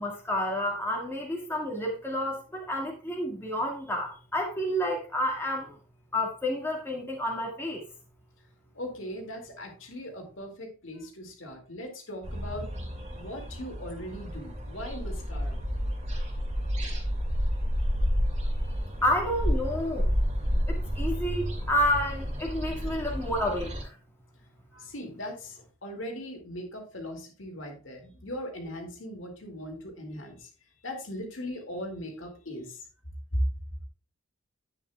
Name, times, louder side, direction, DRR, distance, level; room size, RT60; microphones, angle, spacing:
voice 1, 0.0-5.8 6.1-7.8 19.0-20.1 20.7-23.9, left 1 dB, 10° left, 1.9 m, -30 dB
voice 2, 8.7-12.7 13.1-15.6 24.7-30.5 30.8-32.9 33.3-33.4, equal, 70° left, 2.3 m, -39 dB
sound 1, 12.2-23.8, equal, 35° right, 2.5 m, -30 dB
10.5 x 8.3 x 2.3 m
head